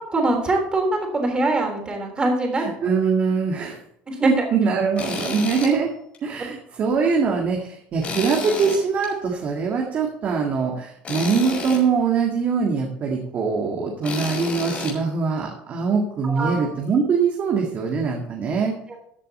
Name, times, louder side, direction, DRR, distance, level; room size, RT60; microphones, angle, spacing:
voice 1, 0.1-2.6 4.1-4.5 16.3-16.7, right 2 dB, 20° right, 2 dB, 3.5 m, -23 dB
voice 2, 2.6-3.8 4.2-5.9 6.2-18.8, right 5 dB, 40° right, 1 dB, 1.8 m, -23 dB
Tools, 5.0-5.7 6.1-6.2 8.0-9.1 11.0-11.8 14.0-14.9, left 3 dB, 30° left, 4.9 m, -30 dB
14.0 x 6.9 x 4.3 m, 0.71 s
cardioid pair, 125°, 4 cm